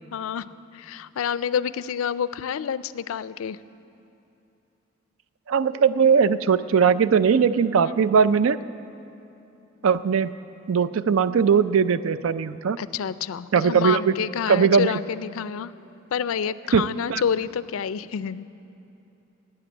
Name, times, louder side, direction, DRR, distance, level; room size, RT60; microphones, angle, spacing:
voice 1, 0.1-3.6 7.8-8.1 12.8-15.7 16.1-18.4, left 7 dB, 90° left, 17 dB, 0.4 m, -28 dB
voice 2, 5.5-8.6 9.8-10.3 10.7-12.8 13.5-14.1 14.5-14.9 16.7-17.2, right 6 dB, 90° right, 14 dB, 0.4 m, -20 dB
13.0 x 9.1 x 8.9 m, 2.9 s
head